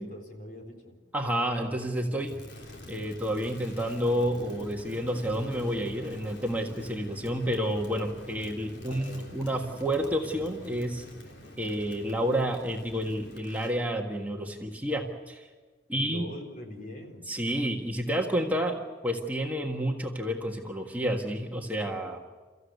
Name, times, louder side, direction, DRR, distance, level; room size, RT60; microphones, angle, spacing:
voice 1, 0.0-1.0 8.8-9.3 15.9-17.3, equal, 50° left, 1 dB, 4.0 m, -43 dB
voice 2, 1.1-2.3 2.9-11.0 11.6-15.5 15.9-16.3 17.3-18.8 19.0-22.2, equal, 10° right, 0 dB, 1.6 m, -30 dB
Crackle, 2.2-13.8, equal, 70° left, 3.7 m, -45 dB
29.5 x 15.0 x 8.2 m, 1.4 s
head